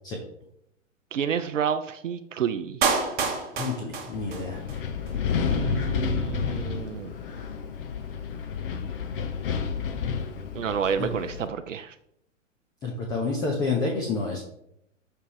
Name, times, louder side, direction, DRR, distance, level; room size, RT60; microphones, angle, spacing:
voice 1, 1.1-2.8 5.5-7.1 10.5-12.0, right 8 dB, 70° right, 10 dB, 0.5 m, -29 dB
Clapping, 2.8-4.8 5.1-5.2, right 5 dB, 25° right, 1.1 m, -27 dB
voice 2, 3.6-4.6 11.0-11.1 12.8-14.4, left 3 dB, 10° left, 0 dB, 0.5 m, -29 dB
Wind, 4.1-11.5, left 6 dB, 45° left, 0.8 m, -30 dB
6.6 x 3.4 x 4.6 m, 0.78 s
figure-of-eight pair, 110°, 39 cm